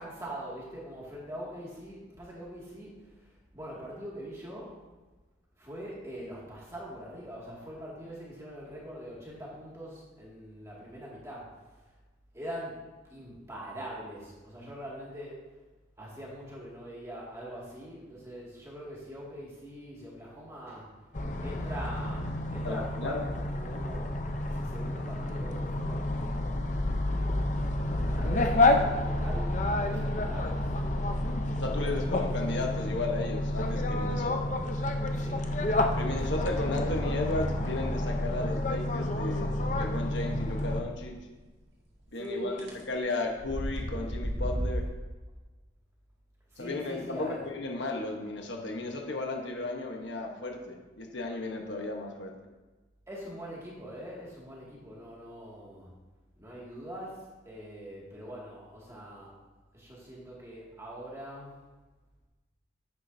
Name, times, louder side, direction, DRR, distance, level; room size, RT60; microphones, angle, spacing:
voice 1, 0.0-2.9 3.5-4.8 5.6-11.5 12.3-12.8 13.1-15.4 16.0-20.9 21.4-24.1 24.5-27.1 27.8-30.7 31.8-32.2 35.1-35.5 36.0-36.4 42.2-42.7 46.5-47.5 53.1-55.9 56.4-57.2 57.5-59.3 59.7-61.5, equal, 15° right, -5 dB, 2.2 m, -43 dB
sound 1, 21.1-40.8, left 1 dB, 40° left, 0.7 m, -29 dB
voice 2, 22.6-23.2 31.6-34.5 36.0-41.2 42.1-42.5 42.9-44.9 46.6-52.3, left 2 dB, 70° left, 2 dB, 1.2 m, -34 dB
sound 2, 41.1-41.2 42.6-42.8 43.3-44.9, equal, 65° right, 2.0 m, -32 dB
10.5 x 8.2 x 2.8 m, 1.2 s
head